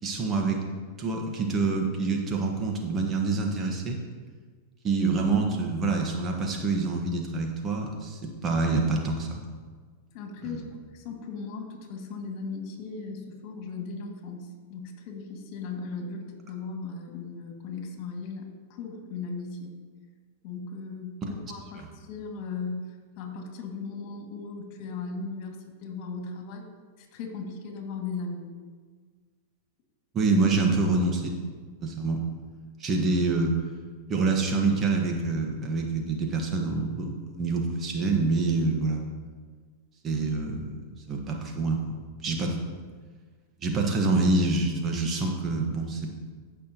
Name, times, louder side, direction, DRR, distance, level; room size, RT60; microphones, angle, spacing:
voice 1, 0.0-0.6 1.0-4.0 4.8-9.4 10.4-10.6 30.1-31.4 31.8-32.2 32.8-33.6 34.1-39.0 40.0-40.8 41.1-41.8 42.2-42.6 43.6-46.1, right 3 dB, 30° right, 2 dB, 1.4 m, -26 dB
voice 2, 10.1-19.7 20.4-26.7 27.0-28.5, left 4 dB, 50° left, 2 dB, 2.2 m, -37 dB
15.5 x 5.9 x 3.0 m, 1.5 s
hypercardioid pair, 105°, 0 cm